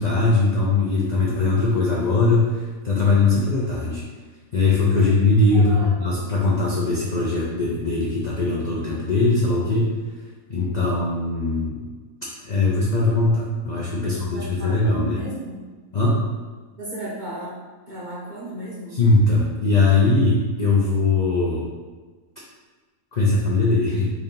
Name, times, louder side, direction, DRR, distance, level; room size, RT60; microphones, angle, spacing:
voice 1, 0.0-4.0 4.5-10.0 10.5-11.8 12.4-15.2 15.9-16.2 18.9-21.7 23.1-24.1, left 3 dB, 70° left, -5 dB, 0.4 m, -20 dB
voice 2, 5.5-5.9 14.0-15.7 16.8-17.6 17.9-19.0, equal, 45° right, -6 dB, 0.6 m, -35 dB
3.4 x 2.7 x 3.7 m, 1.4 s
omnidirectional pair, 1.5 m